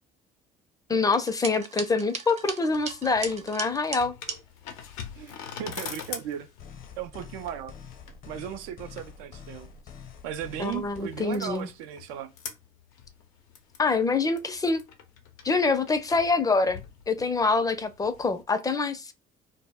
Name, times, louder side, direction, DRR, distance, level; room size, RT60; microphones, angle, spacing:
voice 1, 0.9-4.1 10.6-11.7 13.8-14.8 15.4-19.1, left 4 dB, 20° left, 0.5 m, -25 dB
sound 1, 1.1-4.4, right 5 dB, 40° right, 0.6 m, -37 dB
sound 2, 2.7-18.4, left 7 dB, 90° left, 0.5 m, -45 dB
voice 2, 5.1-6.5 7.0-7.7 8.3-9.7 10.2-12.3, right 10 dB, 85° right, 0.4 m, -36 dB
sound 3, 6.6-11.0, left 6 dB, 55° left, 0.7 m, -46 dB
2.1 x 2.0 x 3.4 m
supercardioid pair, 70°, 17 cm